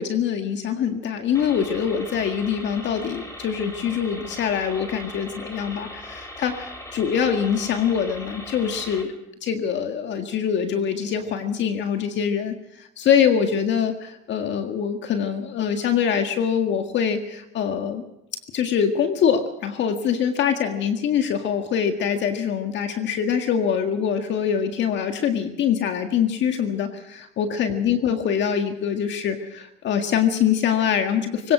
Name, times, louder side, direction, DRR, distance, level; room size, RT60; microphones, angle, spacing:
voice 1, 0.0-9.1 9.4-18.0 18.5-31.5, left 8 dB, 60° left, 6 dB, 1.8 m, -24 dB
sound 1, 1.3-9.0, left 1 dB, 15° left, 5.7 m, -39 dB
21.5 x 18.5 x 6.3 m, 0.85 s
supercardioid pair, 80°, 21 cm